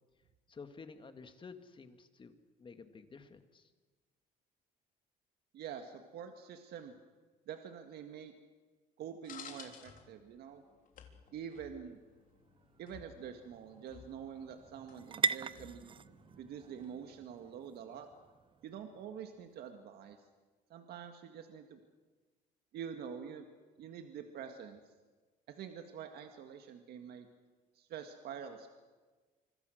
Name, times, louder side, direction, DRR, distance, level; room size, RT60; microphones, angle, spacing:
voice 1, 0.5-3.7, left 4 dB, 30° left, 8 dB, 2.1 m, -52 dB
voice 2, 5.5-7.0 7.5-8.3 9.0-10.6 11.3-12.0 12.8-15.9 16.4-18.1 18.6-20.2 20.7-21.8 22.7-23.5 23.8-24.8 25.5-27.3 27.8-28.7, right 8 dB, 70° right, 5 dB, 1.9 m, -46 dB
sound 1, 9.2-17.3, left 7 dB, 55° left, 3.5 m, -57 dB
sound 2, 11.6-19.5, right 5 dB, 30° right, 0.6 m, -42 dB
26.0 x 25.0 x 6.6 m, 1.3 s
cardioid pair, 110°, 17 cm